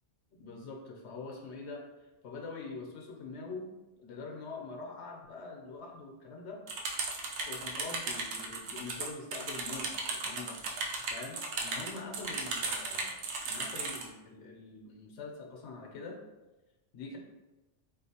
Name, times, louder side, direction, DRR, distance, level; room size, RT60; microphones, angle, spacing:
voice 1, 0.3-3.7 4.0-6.6 7.5-10.6 11.1-16.2 16.9-17.2, left 3 dB, 75° left, 1 dB, 0.9 m, -44 dB
sound 1, 6.7-14.0, right 3 dB, 75° right, 0.9 m, -36 dB
4.2 x 2.5 x 2.8 m, 1.1 s
omnidirectional pair, 1.2 m